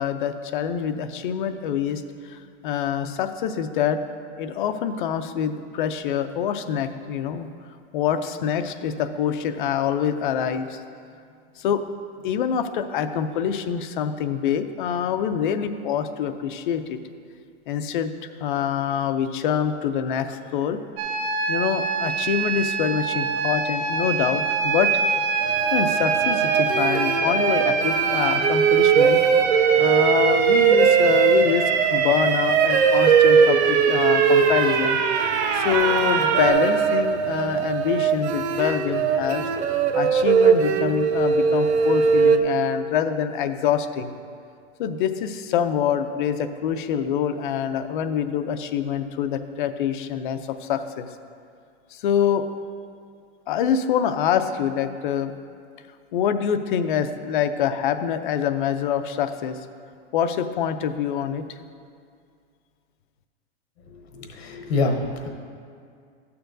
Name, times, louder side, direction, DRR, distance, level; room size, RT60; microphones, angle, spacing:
voice 1, 0.0-2.0 2.3-4.0 4.4-7.5 7.9-10.8 11.6-11.8 12.2-17.0 17.7-20.8 21.5-24.9 25.4-29.2 29.8-31.6 31.9-35.0 35.5-39.4 39.9-44.1 44.8-51.0 51.9-52.5 53.5-55.3 56.1-59.6 60.1-61.4, left 8 dB, 50° left, 9 dB, 0.4 m, -25 dB
sound 1, 21.0-36.5, right 5 dB, 40° right, 0.6 m, -24 dB
sound 2, 25.4-42.4, right 6 dB, 80° right, 0.7 m, -21 dB
voice 2, 64.1-65.3, left 3 dB, 75° left, 3 dB, 1.1 m, -25 dB
12.0 x 6.8 x 2.6 m, 2.2 s
supercardioid pair, 165°, 33 cm